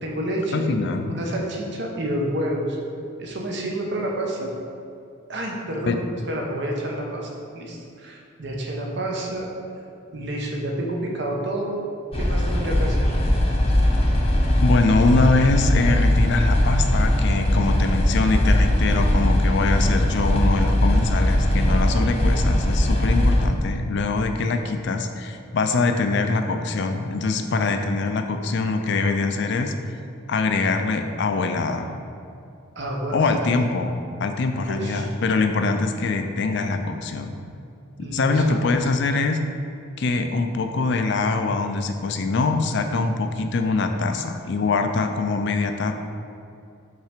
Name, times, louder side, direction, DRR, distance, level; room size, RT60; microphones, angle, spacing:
voice 1, 0.0-0.8 1.1-2.8 3.2-4.5 5.3-6.0 6.3-7.3 7.5-9.5 10.1-11.8 12.1-13.2 32.8-33.5 34.5-35.1 38.0-38.6, right 1 dB, 55° right, -1 dB, 0.9 m, -29 dB
voice 2, 0.5-1.2 5.9-6.0 14.6-29.7 30.3-32.0 33.1-37.3 38.0-39.4 40.0-45.9, left 3 dB, 55° left, 6 dB, 0.4 m, -23 dB
sound 1, 12.1-23.5, left 1 dB, 30° left, 0.7 m, -20 dB
5.6 x 3.3 x 5.0 m, 2.5 s
head